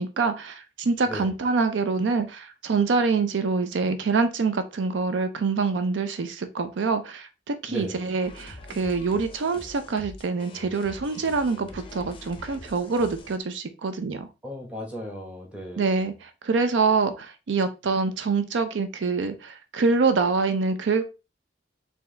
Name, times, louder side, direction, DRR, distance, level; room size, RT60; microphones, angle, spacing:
voice 1, 0.0-14.3 15.8-21.0, right 4 dB, 75° right, 9 dB, 0.5 m, -25 dB
voice 2, 7.7-8.0 14.4-16.0, equal, 5° right, -1 dB, 1.2 m, -36 dB
sound 1, 8.2-13.4, left 2 dB, 30° left, 0.5 m, -44 dB
4.5 x 2.8 x 3.2 m, 0.28 s
head